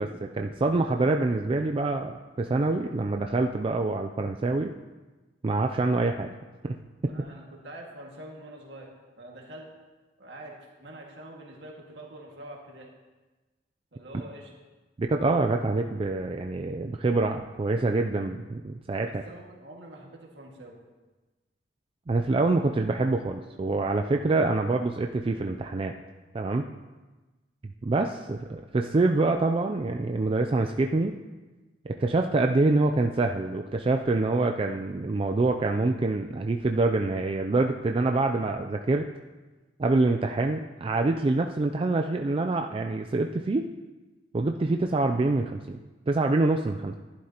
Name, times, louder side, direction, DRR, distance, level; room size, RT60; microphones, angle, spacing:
voice 1, 0.0-4.7 5.4-6.3 6.6-6.8 15.0-19.2 22.1-25.9 26.3-26.6 27.8-31.1 31.8-39.1 39.8-43.7 44.3-45.8 46.1-46.9, right 2 dB, 30° right, 4 dB, 0.4 m, -26 dB
voice 2, 7.1-9.7 10.2-12.9 13.9-14.5 19.1-20.8, right 1 dB, 70° right, -1 dB, 1.9 m, -45 dB
11.5 x 11.0 x 2.9 m, 1.2 s
head